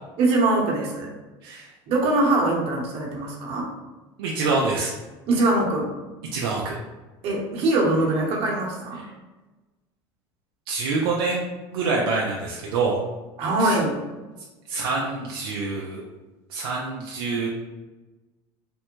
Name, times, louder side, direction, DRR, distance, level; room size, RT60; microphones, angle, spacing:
voice 1, 0.2-1.1 1.9-3.7 5.3-5.9 7.2-9.0 13.4-14.0, right 2 dB, 60° right, -2 dB, 1.0 m, -22 dB
voice 2, 4.2-4.9 6.3-6.8 8.9-9.0 10.7-11.4 11.7-13.0 13.6-13.8 14.7-16.0 16.5-17.5, right 3 dB, 85° right, -3 dB, 0.5 m, -26 dB
3.4 x 2.1 x 3.0 m, 1.1 s
supercardioid pair, 100°, 12 cm